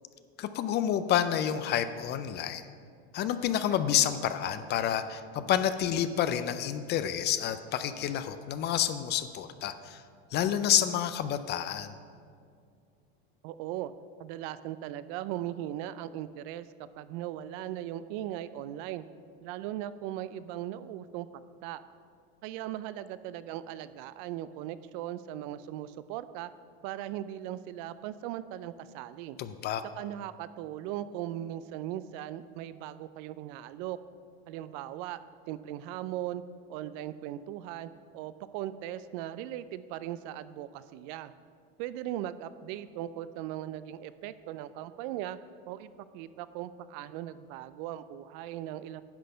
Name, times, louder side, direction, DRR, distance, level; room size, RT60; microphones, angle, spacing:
voice 1, 0.4-2.6 3.1-10.0 10.3-11.9 29.4-29.8, left 10 dB, 35° left, 11 dB, 0.4 m, -29 dB
voice 2, 13.4-13.9 14.2-16.7 17.0-19.0 19.4-21.3 21.6-21.8 22.4-26.5 26.8-29.4 30.0-34.0 34.5-35.2 35.5-36.4 36.7-41.3 41.8-45.4 45.7-49.0, right 12 dB, 55° right, 14 dB, 0.4 m, -38 dB
10.5 x 4.1 x 6.6 m, 2.2 s
supercardioid pair, 115°, 32 cm